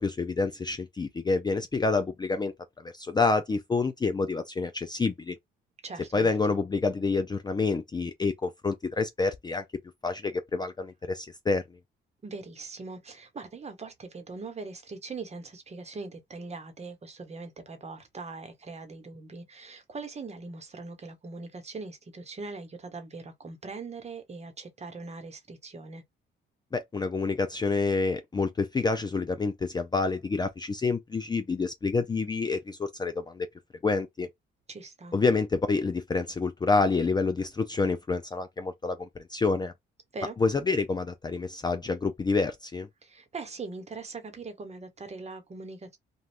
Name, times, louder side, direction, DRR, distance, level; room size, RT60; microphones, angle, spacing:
voice 1, 0.0-2.5 2.8-5.4 6.1-9.6 10.0-11.6 26.7-33.5 33.8-34.3 35.1-39.7 40.4-42.9, left 4 dB, 20° left, 0.4 m, -28 dB
voice 2, 5.8-6.3 12.2-26.0 34.7-35.1 40.1-40.4 43.0-46.0, right 3 dB, 35° right, 1.0 m, -41 dB
2.6 x 2.3 x 3.3 m
cardioid pair, 90°, 20 cm